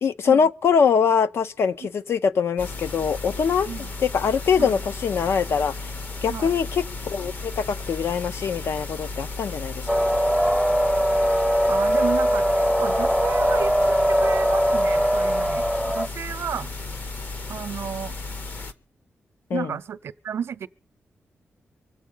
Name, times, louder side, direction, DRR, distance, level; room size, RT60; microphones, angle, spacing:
voice 1, 0.0-3.7 4.0-5.7 6.2-6.8 7.1-10.1 19.5-19.7, left 6 dB, 70° left, 0.6 m, -23 dB
sound 1, 2.6-18.7, left 3 dB, 45° left, 0.9 m, -34 dB
sound 2, 9.9-16.1, equal, 5° left, 0.6 m, -21 dB
voice 2, 11.7-12.4 12.8-13.7 14.2-16.7 17.5-18.2 19.5-20.7, right 8 dB, 70° right, 0.6 m, -32 dB
24.5 x 8.2 x 5.5 m
wide cardioid pair, 170°, 4 cm